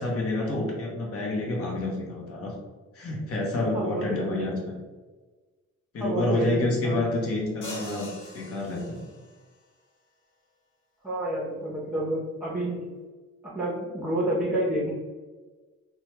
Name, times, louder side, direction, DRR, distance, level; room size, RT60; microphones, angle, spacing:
voice 1, 0.0-2.5 2.9-4.8 5.9-8.1 8.3-9.0, left 2 dB, 50° left, -1 dB, 0.9 m, -28 dB
voice 2, 3.7-4.4 6.0-7.1 11.0-12.8 13.4-14.9, right 1 dB, 5° right, -7 dB, 0.8 m, -29 dB
sound 1, 7.6-9.4, equal, 85° left, 1.1 m, -42 dB
3.1 x 2.3 x 3.0 m, 1.3 s
cardioid pair, 90°, 30 cm